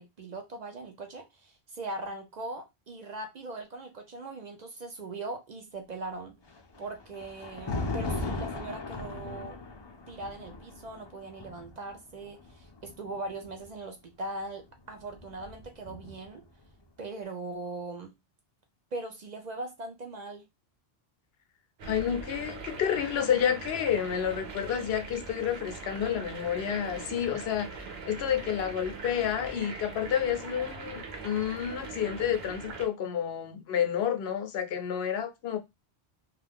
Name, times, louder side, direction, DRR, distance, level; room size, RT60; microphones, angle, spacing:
voice 1, 0.0-6.3 6.8-9.6 10.1-16.4 17.0-18.1 18.9-20.4, right 2 dB, 55° right, 0.5 m, -40 dB
Thunder, 6.4-13.6 14.7-16.4, left 2 dB, 40° left, 0.4 m, -38 dB
voice 2, 21.8-35.6, left 9 dB, 80° left, 0.8 m, -30 dB
sound 1, 21.8-32.9, right 4 dB, 75° right, 1.0 m, -41 dB
2.4 x 2.3 x 3.4 m
omnidirectional pair, 1.0 m